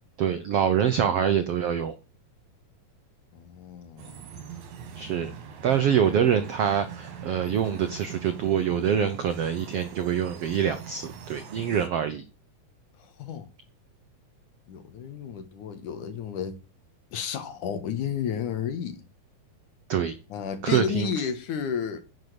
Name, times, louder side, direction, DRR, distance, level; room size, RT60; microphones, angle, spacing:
voice 1, 0.2-2.0 5.0-5.3 5.6-12.2 19.9-20.1 20.6-21.1, right 8 dB, 75° right, 1.4 m, -25 dB
voice 2, 3.3-4.1 13.0-13.5 14.7-16.6 17.1-19.0 20.3-22.0, left 7 dB, 65° left, 2.7 m, -32 dB
sound 1, 4.0-11.9, right 8 dB, 60° right, 2.9 m, -42 dB
10.5 x 7.2 x 8.0 m
omnidirectional pair, 4.1 m